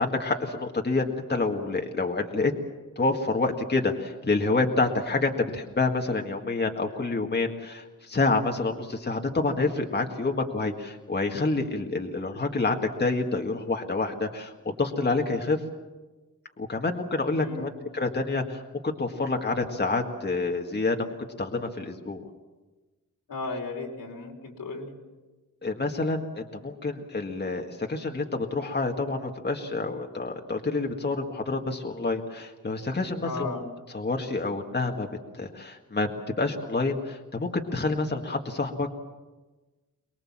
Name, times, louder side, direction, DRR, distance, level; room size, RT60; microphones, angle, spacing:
voice 1, 0.0-2.5 3.0-15.6 16.6-18.6 19.0-22.2 25.6-33.5 33.9-35.1 35.3-38.9, left 3 dB, 30° left, 2 dB, 1.9 m, -28 dB
voice 2, 17.3-17.8 23.3-24.9 33.2-33.6, left 3 dB, 90° left, 1 dB, 4.8 m, -35 dB
23.5 x 21.5 x 7.5 m, 1.2 s
wide cardioid pair, 105°, 34 cm